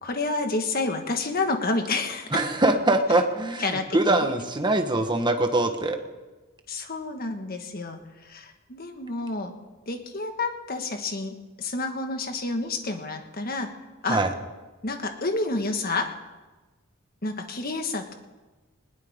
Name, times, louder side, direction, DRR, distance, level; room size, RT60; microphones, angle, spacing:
voice 1, 0.0-2.4 3.6-4.2 6.7-9.5 9.9-13.7 14.0-14.2 14.8-16.1 17.2-18.1, left 3 dB, 45° left, 5 dB, 1.6 m, -29 dB
voice 2, 2.3-6.0 14.1-14.3, right 2 dB, 20° right, 5 dB, 1.3 m, -23 dB
20.5 x 19.0 x 3.7 m, 1.2 s
head